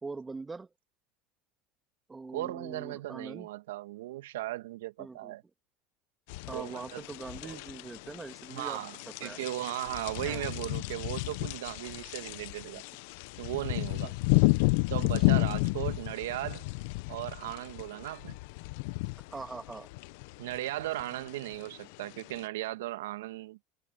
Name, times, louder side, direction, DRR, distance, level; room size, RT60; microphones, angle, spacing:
voice 1, 0.0-0.7 2.1-3.5 5.0-5.4 6.5-8.8 9.2-9.4 10.2-10.5 14.0-14.2 19.3-19.9, right 3 dB, 20° right, 2.3 m, -42 dB
voice 2, 2.3-5.4 6.5-7.0 7.4-7.6 8.5-12.8 13.4-14.1 14.9-16.6 17.1-18.4 20.4-23.6, right 16 dB, 80° right, 1.9 m, -37 dB
sound 1, 6.3-22.5, left 25 dB, 70° left, 1.1 m, -32 dB
hypercardioid pair, 80°, 0 cm